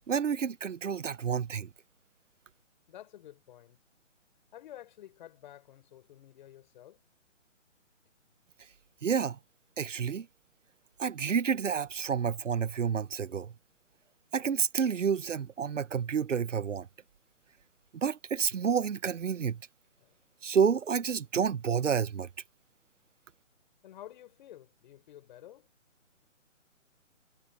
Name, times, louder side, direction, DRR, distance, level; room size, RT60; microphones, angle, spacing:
voice 1, 0.1-1.7 9.0-9.4 9.8-10.3 11.0-13.5 14.3-16.9 17.9-19.6 20.4-22.3, right 7 dB, 70° right, 1.1 m, -29 dB
voice 2, 2.9-3.8 4.5-7.0 20.0-20.1 23.8-25.7, left 12 dB, 40° left, 6.9 m, -51 dB
hypercardioid pair, 150°, 38 cm